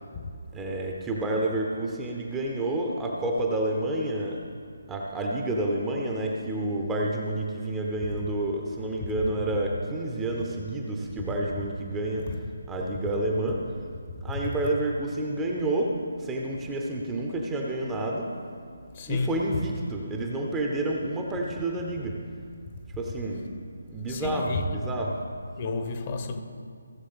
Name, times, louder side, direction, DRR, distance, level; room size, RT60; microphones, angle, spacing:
voice 1, 0.5-4.4 4.9-12.3 12.7-13.7 14.2-18.3 19.1-22.2 23.0-23.5 23.9-25.2, right 1 dB, 10° right, 0.8 m, -29 dB
voice 2, 18.9-19.3 24.1-25.0 25.6-26.4, left 3 dB, 30° left, 1.0 m, -31 dB
17.5 x 7.1 x 3.6 m
figure-of-eight pair, 150°, 0 cm